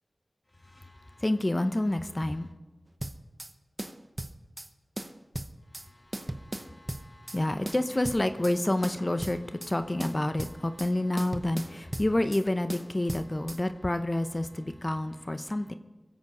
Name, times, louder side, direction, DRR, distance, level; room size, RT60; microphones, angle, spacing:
voice 1, 0.7-2.5 5.9-15.7, left 1 dB, 30° left, 9 dB, 0.7 m, -29 dB
sound 1, 3.0-3.5 3.8-4.7 5.0-5.9 6.1-7.4 7.7-8.6 8.8-9.7 10.0-10.9 11.2-12.4 12.7-13.6, right 1 dB, 30° right, 0.8 m, -37 dB
23.5 x 8.2 x 5.3 m, 1.2 s
wide cardioid pair, 60°, 0 cm